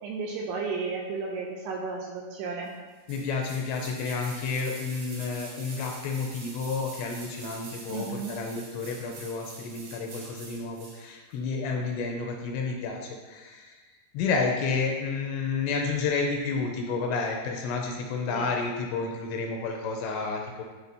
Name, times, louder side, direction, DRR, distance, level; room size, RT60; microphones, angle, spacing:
voice 1, 0.0-2.7 7.9-8.4 18.3-18.5, right 4 dB, 80° right, 0 dB, 2.5 m, -33 dB
voice 2, 3.1-13.8 14.1-20.6, left 4 dB, 85° left, 1 dB, 2.8 m, -30 dB
sound 1, 3.1-11.0 11.3-11.4, right 3 dB, 60° right, 3.0 m, -45 dB
12.0 x 4.4 x 2.7 m, 1.4 s
omnidirectional pair, 5.3 m